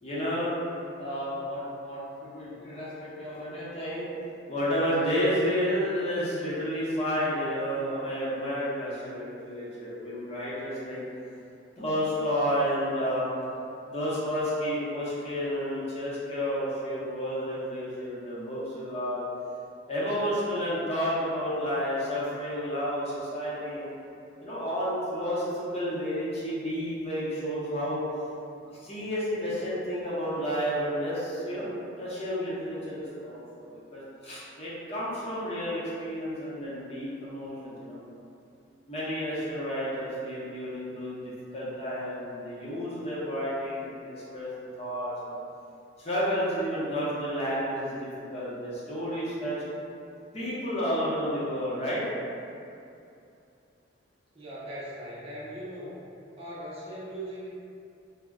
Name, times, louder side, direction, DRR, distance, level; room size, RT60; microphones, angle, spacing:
voice 1, 0.0-0.5 1.0-4.1 4.5-11.0 11.8-13.3 13.9-19.2 19.9-23.9 24.4-28.0 28.8-38.0 38.9-45.4 46.0-49.6 50.3-52.0, equal, 35° left, -9 dB, 0.7 m, -31 dB
voice 2, 54.3-56.0 56.4-57.5, right 1 dB, 30° right, -8 dB, 0.5 m, -39 dB
2.2 x 2.0 x 3.5 m, 2.6 s
head